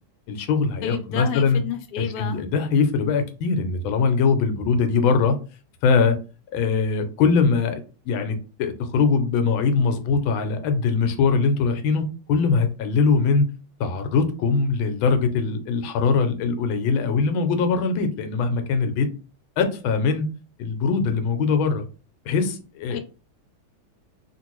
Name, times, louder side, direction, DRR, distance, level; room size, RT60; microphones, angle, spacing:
voice 1, 0.3-1.6 2.0-5.4 5.8-6.2 6.5-13.5 13.8-19.1 19.6-20.2 20.6-21.8 22.3-23.0, left 5 dB, 90° left, 1.4 m, -22 dB
voice 2, 0.8-2.4 22.9-23.0, left 7 dB, 70° left, 1.0 m, -30 dB
3.1 x 2.5 x 2.9 m
omnidirectional pair, 2.1 m